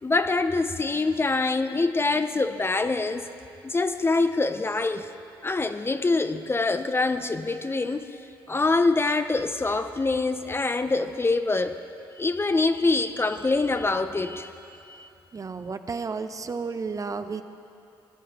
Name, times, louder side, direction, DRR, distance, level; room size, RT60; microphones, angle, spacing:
voice 1, 0.0-3.3 3.6-5.1 5.4-8.1 8.5-11.8 12.2-14.5 14.9-15.1, left 3 dB, 25° left, 9 dB, 0.5 m, -25 dB
voice 2, 15.3-17.4, right 4 dB, 35° right, 9 dB, 0.6 m, -32 dB
18.0 x 11.0 x 2.9 m, 2.7 s
supercardioid pair, 60°, 10 cm